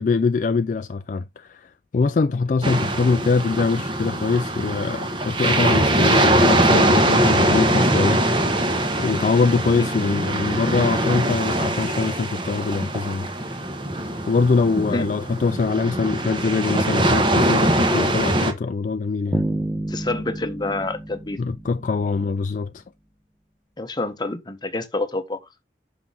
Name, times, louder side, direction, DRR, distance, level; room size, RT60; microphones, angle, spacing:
voice 1, 0.0-8.2 9.0-13.3 14.3-19.5 21.4-22.8, left 4 dB, 45° left, 0.3 m, -23 dB
sound 1, 2.6-18.5, right 1 dB, 30° right, 1.2 m, -22 dB
voice 2, 14.8-15.1 19.9-21.4 23.8-25.4, left 2 dB, 25° left, 0.9 m, -28 dB
sound 2, 19.3-22.4, right 1 dB, 5° right, 0.7 m, -29 dB
6.0 x 5.8 x 3.8 m
head